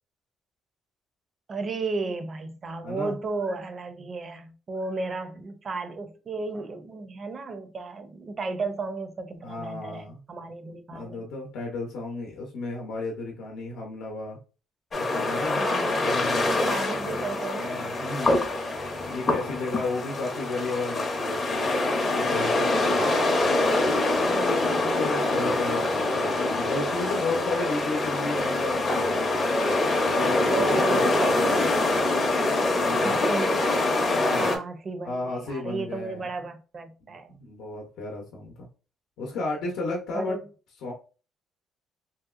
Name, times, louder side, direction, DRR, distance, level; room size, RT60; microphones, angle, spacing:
voice 1, 1.5-11.2 15.6-16.0 16.5-18.0 22.8-23.3 24.2-25.1 30.5-31.7 32.6-33.7 34.4-37.4 40.1-40.4, right 3 dB, 35° right, 0.4 m, -34 dB
voice 2, 2.8-3.1 9.4-10.2 10.9-14.4 14.9-15.6 16.0-16.7 17.6-18.4 19.1-21.7 22.1-23.1 24.4-24.7 25.0-29.2 30.1-31.6 32.8-33.2 34.1-34.6 35.0-36.3 37.0-38.7 39.2-40.4 40.8-40.9, left 3 dB, 75° left, 0.7 m, -33 dB
sound 1, 14.9-34.6, left 2 dB, 30° left, 0.6 m, -25 dB
2.9 x 2.7 x 2.4 m
cardioid pair, 140°, 0 cm